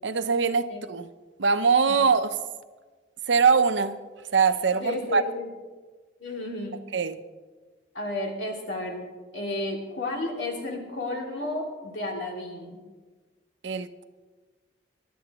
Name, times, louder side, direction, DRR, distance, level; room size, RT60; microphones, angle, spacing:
voice 1, 0.0-1.1 1.4-2.3 3.3-4.0 4.3-5.2 6.9-7.2 13.6-14.0, right 5 dB, 75° right, 11 dB, 0.7 m, -22 dB
voice 2, 4.7-5.5 6.2-6.8 7.9-9.1 9.3-12.8, left 2 dB, 75° left, -1 dB, 3.0 m, -32 dB
23.5 x 12.0 x 3.0 m, 1.4 s
head